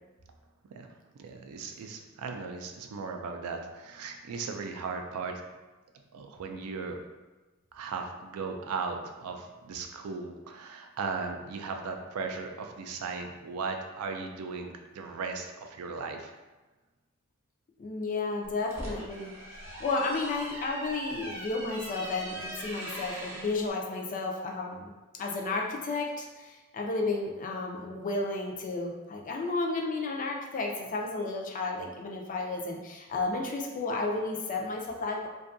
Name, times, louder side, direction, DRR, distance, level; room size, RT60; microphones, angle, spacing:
voice 1, 1.2-5.4 6.1-7.0 7.7-16.3, right 4 dB, 80° right, 4 dB, 0.3 m, -37 dB
voice 2, 17.8-35.3, left 3 dB, 40° left, 1 dB, 0.4 m, -32 dB
sound 1, 18.4-23.6, equal, 10° right, 0.6 m, -41 dB
2.6 x 2.3 x 2.5 m, 1.2 s
head